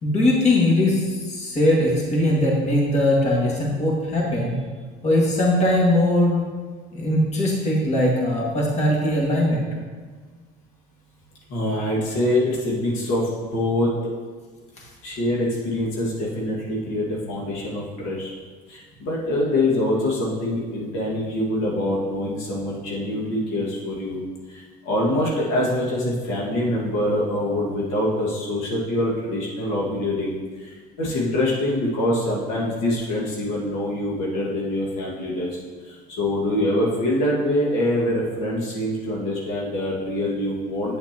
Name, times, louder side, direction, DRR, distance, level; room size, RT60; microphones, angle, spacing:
voice 1, 0.0-4.5 5.0-6.4 6.9-9.7, left 1 dB, 30° left, -3 dB, 2.0 m, -20 dB
voice 2, 11.5-13.9 15.0-18.3 18.7-24.2 24.5-35.6 35.8-41.0, left 1 dB, 75° left, -4 dB, 2.0 m, -24 dB
8.0 x 7.2 x 2.9 m, 1.5 s
supercardioid pair, 90°, 21 cm